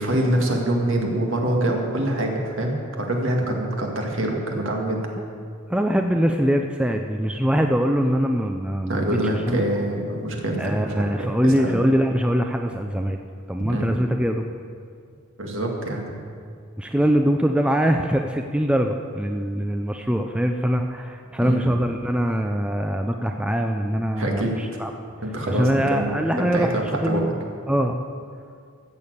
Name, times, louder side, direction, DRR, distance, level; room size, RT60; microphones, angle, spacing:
voice 1, 0.0-5.0 8.9-11.7 13.6-14.0 15.4-16.1 21.4-21.6 24.1-24.6 25.2-27.2, right 1 dB, 60° right, 1 dB, 2.1 m, -25 dB
voice 2, 5.7-9.1 9.3-9.8 10.6-13.2 13.5-14.5 16.8-24.9 25.5-27.3 27.7-28.0, equal, 5° right, 4 dB, 0.4 m, -23 dB
14.0 x 7.0 x 8.0 m, 2.2 s
head